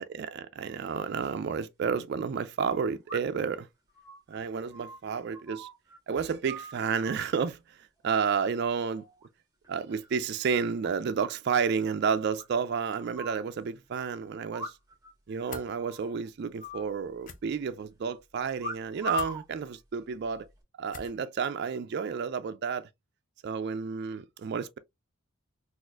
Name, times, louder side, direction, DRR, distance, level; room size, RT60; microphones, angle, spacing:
voice 1, 0.0-3.7 4.3-5.7 6.1-7.8 8.0-9.0 9.7-14.7 15.3-20.5 20.8-22.9 23.4-24.8, right 6 dB, 50° right, 0.3 m, -31 dB
sound 1, 3.1-3.5 3.9-6.0 6.2-7.3 8.1-8.6 8.9-9.3 9.6-10.2 10.5-10.6 10.8-10.9 11.2-11.3 11.6-11.7 12.4-13.4 14.5-15.1 15.4-15.5 15.8-16.1 16.6-17.5 18.6-19.5 20.2-20.6, equal, 15° right, 1.3 m, -39 dB
sound 2, 15.5-15.7 17.2-17.4 19.1-19.4 20.9-21.2, left 4 dB, 40° left, 0.4 m, -44 dB
4.0 x 2.4 x 2.3 m
head